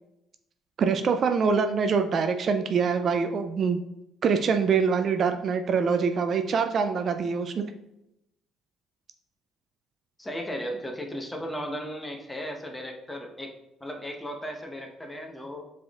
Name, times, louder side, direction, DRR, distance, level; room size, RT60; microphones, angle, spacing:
voice 1, 0.8-3.8 4.2-7.6, right 5 dB, 50° right, 7 dB, 0.3 m, -24 dB
voice 2, 10.2-13.5 13.8-15.6, equal, 15° left, 2 dB, 0.9 m, -36 dB
4.8 x 3.4 x 2.4 m, 0.86 s
hypercardioid pair, 60°, 0 cm